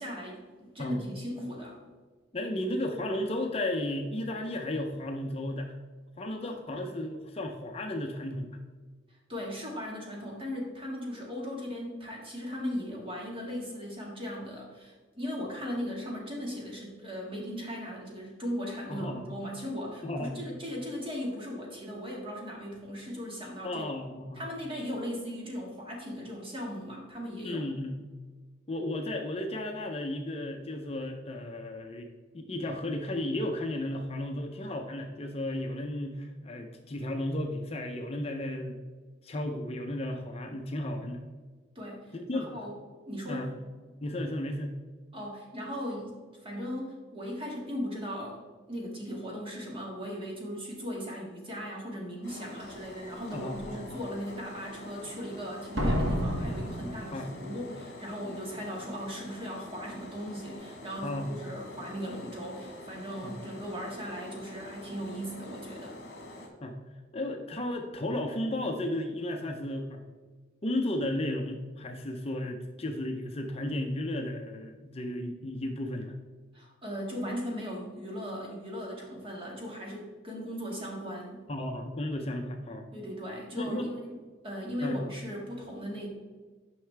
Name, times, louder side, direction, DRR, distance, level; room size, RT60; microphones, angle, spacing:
voice 1, 0.0-1.8 6.4-6.5 9.1-23.9 24.3-27.6 41.8-42.7 43.1-43.5 45.1-46.1 46.4-48.4 48.7-66.0 76.5-81.4 82.9-86.1, equal, 30° right, -2 dB, 1.9 m, -38 dB
voice 2, 2.3-5.8 6.2-8.5 18.9-19.2 20.0-20.4 23.6-24.4 27.4-28.0 28.7-32.1 32.3-38.8 39.2-41.2 42.1-42.6 43.3-43.5 44.0-44.7 53.3-54.0 57.1-57.3 61.0-61.3 63.2-63.4 66.6-66.8 67.1-70.0 70.6-76.1 81.5-83.0 83.5-83.9 84.8-85.0, left 1 dB, 30° left, 3 dB, 0.6 m, -34 dB
sound 1, 52.2-66.5, left 1 dB, 60° left, 1.5 m, -46 dB
Slam, 52.6-52.7 53.3-53.7 55.8-57.6 57.9-58.0, equal, 90° right, 1.6 m, -31 dB
9.6 x 5.7 x 3.4 m, 1.4 s
head